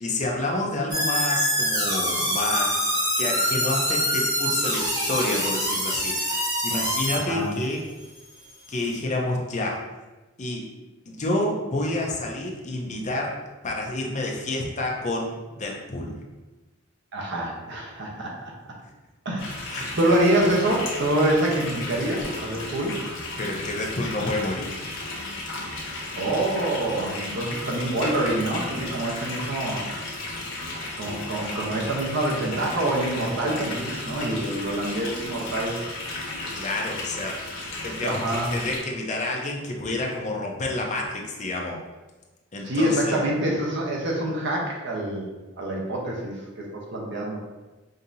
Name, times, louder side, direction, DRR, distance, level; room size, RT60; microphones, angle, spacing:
voice 1, 0.0-2.8 3.2-7.8 8.7-9.8 10.4-10.6 11.1-13.4 13.6-16.2 19.7-20.0 23.4-24.7 36.5-41.8 42.5-43.2, left 2 dB, 35° left, 0 dB, 0.6 m, -29 dB
sound 1, 0.9-7.2, equal, 20° right, 1.5 m, -25 dB
voice 2, 7.1-7.6 17.1-18.5 19.2-23.0 26.2-29.9 31.0-35.8 38.0-38.5 42.6-45.3 45.6-47.4, right 1 dB, 65° right, -2 dB, 0.9 m, -26 dB
sound 2, 19.4-38.8, left 2 dB, 80° left, 1.1 m, -34 dB
5.2 x 2.8 x 2.6 m, 1.2 s
head